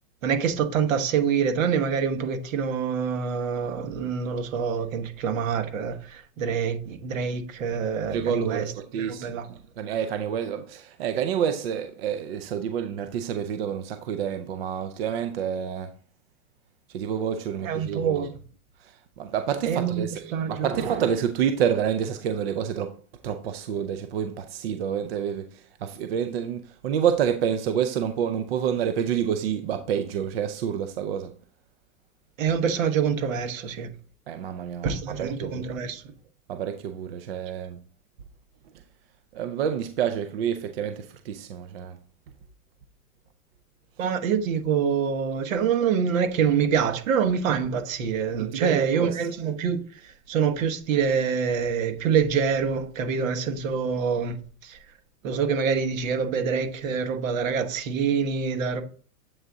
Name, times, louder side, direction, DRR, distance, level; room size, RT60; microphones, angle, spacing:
voice 1, 0.2-8.7 8.9-9.4 17.6-18.4 19.7-20.7 32.4-33.9 34.8-36.0 44.0-54.8 55.2-58.8, right 6 dB, 65° right, 1.2 m, -26 dB
voice 2, 8.1-15.9 16.9-18.3 18.8-23.0 23.2-31.3 34.3-35.7 36.5-37.8 39.3-42.0 48.4-49.2, right 8 dB, 45° right, 0.5 m, -28 dB
7.8 x 3.8 x 3.5 m
supercardioid pair, 175°, 43 cm